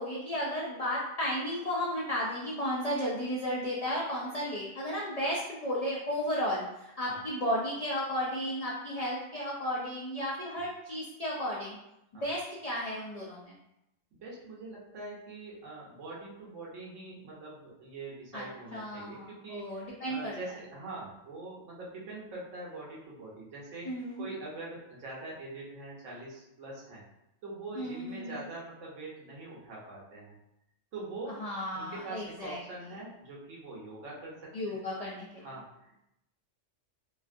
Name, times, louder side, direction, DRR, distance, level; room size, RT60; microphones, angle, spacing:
voice 1, 0.0-11.8 12.2-13.5 18.3-18.4 18.7-20.3 23.8-24.3 27.8-28.4 31.4-32.6 34.5-35.4, equal, 80° left, -4 dB, 0.3 m, -34 dB
voice 2, 14.2-27.0 27.4-30.4 30.9-31.4 31.7-34.9 35.4-36.0, right 2 dB, 80° right, -5 dB, 1.2 m, -43 dB
2.9 x 2.5 x 2.4 m, 0.85 s
omnidirectional pair, 1.3 m